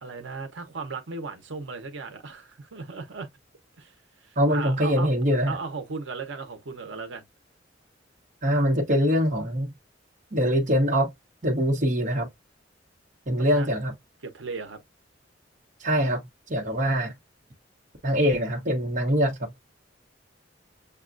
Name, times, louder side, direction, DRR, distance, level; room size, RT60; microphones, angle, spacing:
voice 1, 0.0-3.3 3.8-3.9 4.2-5.1 5.5-7.2 13.4-13.7 14.2-14.8 16.6-16.8, right 4 dB, 85° right, 0.8 m, -36 dB
voice 2, 4.4-5.6 8.4-9.7 10.3-11.1 11.4-12.3 13.3-13.9 15.8-16.2 16.5-17.1 18.0-19.5, equal, 45° right, 1.1 m, -23 dB
6.8 x 2.3 x 2.5 m
head